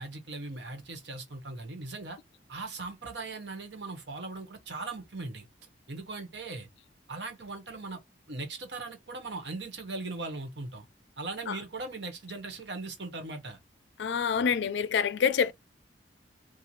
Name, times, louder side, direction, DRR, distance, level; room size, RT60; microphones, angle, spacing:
voice 1, 0.0-2.2 2.5-5.5 5.9-6.7 7.1-8.0 8.3-10.8 11.2-13.6, right 3 dB, 80° right, 1.3 m, -39 dB
voice 2, 14.0-15.5, left 7 dB, 80° left, 0.4 m, -26 dB
3.1 x 2.4 x 4.0 m
head